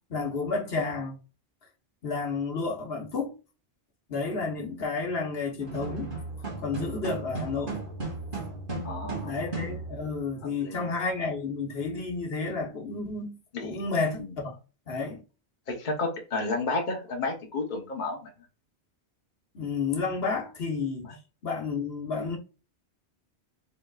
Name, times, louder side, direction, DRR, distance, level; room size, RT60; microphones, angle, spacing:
voice 1, 0.1-1.1 2.0-3.3 4.1-6.1 6.6-7.8 9.0-14.5 14.9-15.2 19.5-21.1 21.4-22.4, left 4 dB, 65° left, 1.4 m, -31 dB
sound 1, 5.6-10.2, right 3 dB, 50° right, 2.2 m, -35 dB
voice 2, 8.8-9.4 10.6-10.9 13.5-13.8 14.2-14.4 15.7-18.3 21.0-21.2, left 3 dB, 50° left, 1.1 m, -32 dB
5.1 x 4.3 x 2.4 m
omnidirectional pair, 1.1 m